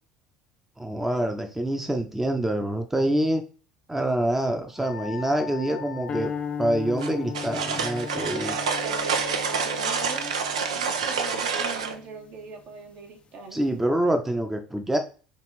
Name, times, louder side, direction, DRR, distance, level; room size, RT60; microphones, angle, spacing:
voice 1, 0.8-3.4 3.9-6.3 6.6-8.6 13.5-15.0, right 1 dB, 10° right, 4 dB, 0.6 m, -26 dB
Wind instrument woodwind instrument, 4.7-10.3, left 12 dB, 75° left, 0.7 m, -43 dB
sound 1, 6.1-12.4, left 6 dB, 35° left, 0.4 m, -37 dB
sound 2, 7.0-12.0, right 5 dB, 85° right, 0.5 m, -28 dB
voice 2, 8.4-10.4 10.8-13.6, right 3 dB, 60° right, 2 dB, 1.2 m, -42 dB
5.2 x 2.4 x 3.1 m, 0.37 s
hypercardioid pair, 70°, 3 cm